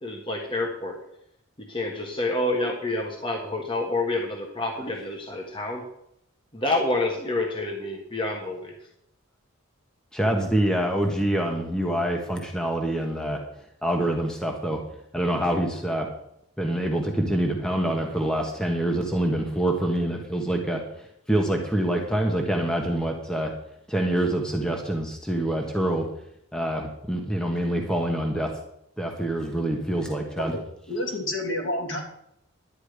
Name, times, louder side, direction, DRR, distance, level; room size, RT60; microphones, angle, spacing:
voice 1, 0.0-1.0 1.7-5.8 6.5-8.7, left 2 dB, 25° left, 0 dB, 1.5 m, -28 dB
voice 2, 10.1-13.4 13.8-14.8 15.1-16.1 16.6-20.8 21.3-23.5 23.9-26.0 26.5-28.5 29.0-30.6, right 1 dB, 5° left, 2 dB, 1.3 m, -26 dB
voice 3, 30.5-32.0, left 1 dB, 65° left, 1 dB, 3.1 m, -30 dB
11.5 x 9.6 x 5.0 m, 0.76 s
head